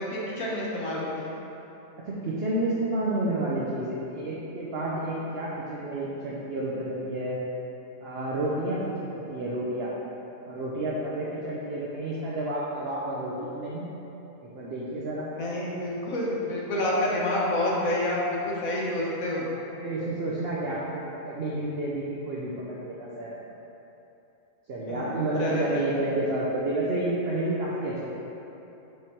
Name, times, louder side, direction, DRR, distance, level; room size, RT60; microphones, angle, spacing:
voice 1, 0.0-1.3 15.3-19.4 24.9-26.0, left 1 dB, 75° left, -5 dB, 1.6 m, -28 dB
voice 2, 2.1-7.4 8.0-9.9 10.5-13.9 14.4-15.3 19.7-23.4 24.7-28.1, right 1 dB, 50° right, -6 dB, 0.9 m, -30 dB
7.7 x 3.6 x 4.4 m, 3.0 s
omnidirectional pair, 1.5 m